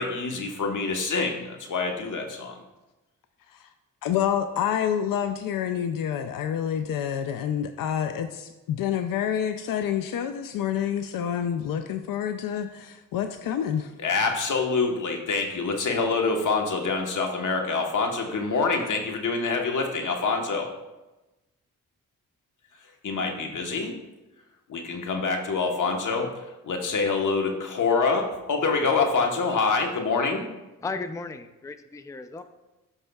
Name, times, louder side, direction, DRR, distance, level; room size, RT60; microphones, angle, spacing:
voice 1, 0.0-2.6 14.0-20.7 23.0-24.0 24.7-26.3 26.6-30.5, left 4 dB, 70° left, 3 dB, 1.2 m, -26 dB
voice 2, 4.0-13.9, left 9 dB, 85° left, 8 dB, 0.5 m, -28 dB
voice 3, 30.8-32.4, left 3 dB, 10° left, 9 dB, 0.4 m, -35 dB
12.5 x 5.4 x 2.3 m, 1.0 s
cardioid pair, 70°, 32 cm